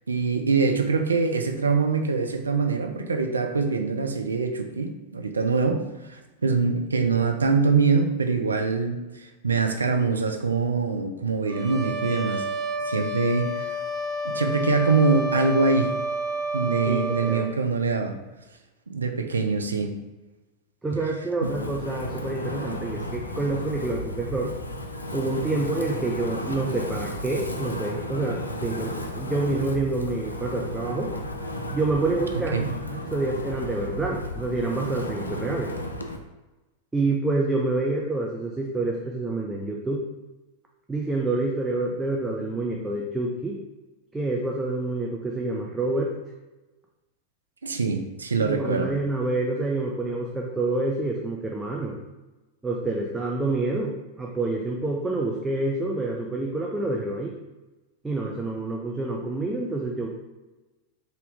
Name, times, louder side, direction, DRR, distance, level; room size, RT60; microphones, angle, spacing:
voice 1, 0.1-5.8 6.1-12.5 12.9-13.8 14.2-15.9 16.5-18.2 18.9-19.9 21.4-21.5 32.5-32.7 47.6-48.9, right 4 dB, 75° right, 5 dB, 0.4 m, -24 dB
sound 1, 11.5-17.5, right 1 dB, 35° right, 0.9 m, -30 dB
voice 2, 16.7-17.5 20.8-24.5 25.1-31.2 31.7-32.6 33.0-35.7 36.9-40.0 40.9-43.6 44.1-46.1 48.4-52.0 52.6-57.3 58.0-60.1, right 2 dB, 10° right, -2 dB, 0.5 m, -27 dB
Wind, 21.4-36.2, left 1 dB, 80° left, 0.4 m, -34 dB
3.9 x 2.8 x 3.5 m, 1.1 s
figure-of-eight pair, 90°, 0 cm